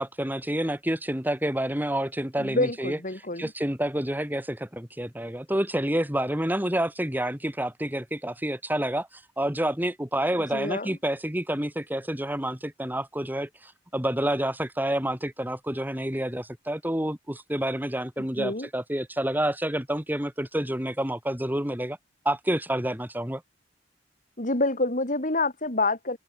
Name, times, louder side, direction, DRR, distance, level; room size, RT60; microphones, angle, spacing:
voice 1, 0.0-22.0 22.3-23.4, right 1 dB, 10° right, 3.7 m, -29 dB
voice 2, 2.4-3.5 10.5-10.9 18.4-18.7 24.4-26.2, left 2 dB, 40° left, 4.8 m, -27 dB
head